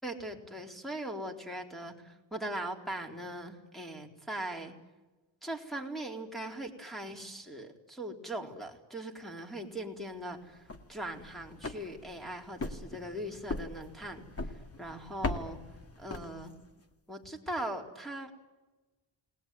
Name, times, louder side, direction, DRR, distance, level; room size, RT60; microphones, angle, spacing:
voice 1, 0.0-4.7 5.4-15.6 16.0-16.5 17.1-18.3, right 1 dB, ahead, 3 dB, 4.0 m, -40 dB
sound 1, 10.5-16.8, left 3 dB, 30° left, 2.1 m, -40 dB
29.5 x 20.0 x 9.4 m, 1.2 s
wide cardioid pair, 150°, 46 cm